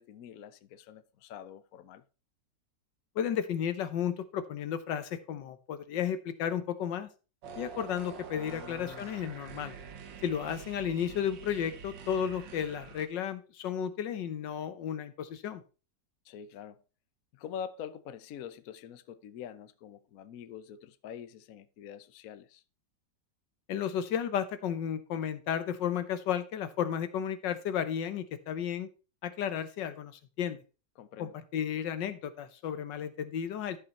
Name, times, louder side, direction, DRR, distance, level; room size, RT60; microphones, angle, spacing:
voice 1, 0.0-2.0 8.3-9.1 16.2-16.8 17.3-22.6 31.0-31.3, left 8 dB, 60° left, 1.0 m, -45 dB
voice 2, 3.1-7.1 7.6-9.7 10.2-15.6 23.7-28.9 29.2-30.6 31.2-33.8, left 8 dB, 80° left, 1.6 m, -33 dB
sound 1, 7.4-13.1, right 6 dB, 80° right, 1.7 m, -46 dB
13.0 x 5.5 x 4.1 m
omnidirectional pair, 2.0 m